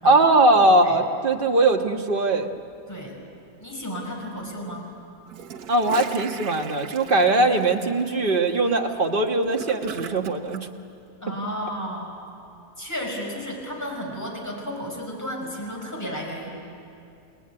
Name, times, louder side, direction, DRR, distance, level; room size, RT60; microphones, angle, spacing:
voice 1, 0.0-2.5 5.7-10.7, right 2 dB, 35° right, 3 dB, 1.5 m, -20 dB
voice 2, 3.6-4.9 11.2-12.1 12.8-16.5, equal, 10° left, -1 dB, 5.4 m, -33 dB
Gurgling / Toilet flush, 5.3-10.6, right 7 dB, 70° right, 1.5 m, -39 dB
29.5 x 19.0 x 9.8 m, 2.6 s
omnidirectional pair, 1.7 m